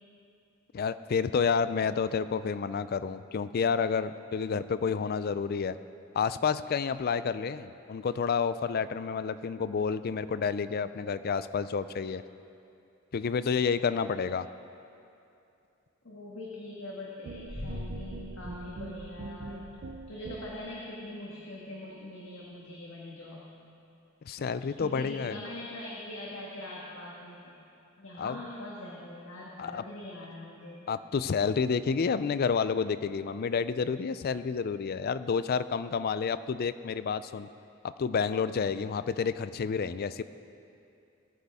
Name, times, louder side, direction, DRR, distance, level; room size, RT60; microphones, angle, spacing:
voice 1, 0.7-5.8 6.1-12.2 13.1-14.5 24.2-25.4 28.2-28.4 29.6-29.8 30.9-37.5 38.0-40.2, left 6 dB, 50° left, 14 dB, 0.4 m, -29 dB
voice 2, 16.0-19.7 20.1-23.5 24.8-27.6 28.0-30.9, left 1 dB, 80° left, -4 dB, 1.6 m, -42 dB
sound 1, 17.3-20.8, right 3 dB, 65° right, 0.6 m, -43 dB
sound 2, 17.5-19.7, left 1 dB, 25° left, 1.4 m, -42 dB
19.0 x 9.1 x 3.6 m, 2.6 s
head